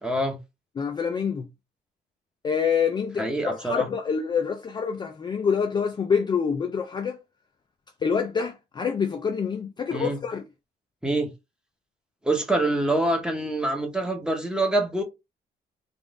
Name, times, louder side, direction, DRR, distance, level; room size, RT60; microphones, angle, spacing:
voice 1, 0.0-0.4 3.2-3.9 9.9-10.2 11.0-11.3 12.2-15.0, right 1 dB, 5° right, 0.8 m, -25 dB
voice 2, 0.8-1.5 2.4-7.2 8.0-10.4, left 6 dB, 25° left, 0.3 m, -26 dB
3.6 x 2.4 x 3.5 m
wide cardioid pair, 170°, 18 cm